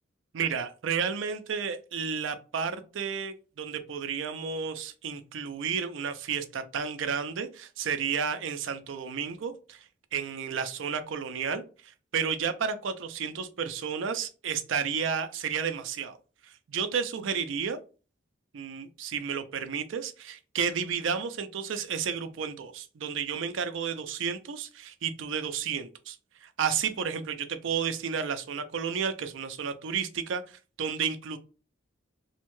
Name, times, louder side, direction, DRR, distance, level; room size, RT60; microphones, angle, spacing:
voice 1, 0.3-9.8 10.1-16.2 16.4-17.8 18.5-26.2 26.4-31.4, right 6 dB, 75° right, 9 dB, 0.4 m, -32 dB
2.7 x 2.1 x 3.0 m, 0.34 s
head